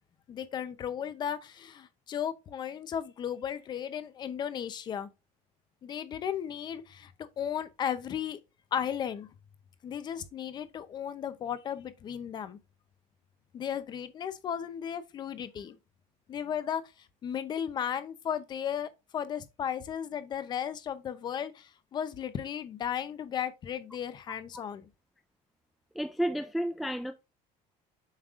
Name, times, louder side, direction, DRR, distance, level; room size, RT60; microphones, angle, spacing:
voice 1, 0.3-5.1 5.8-7.1 7.4-8.4 8.7-9.3 9.8-12.6 13.5-15.8 16.3-24.8, left 9 dB, 30° left, 0.6 m, -35 dB
voice 2, 25.9-27.1, equal, ahead, 0.3 m, -31 dB
7.3 x 5.2 x 2.5 m
cardioid pair, 175°, 14 cm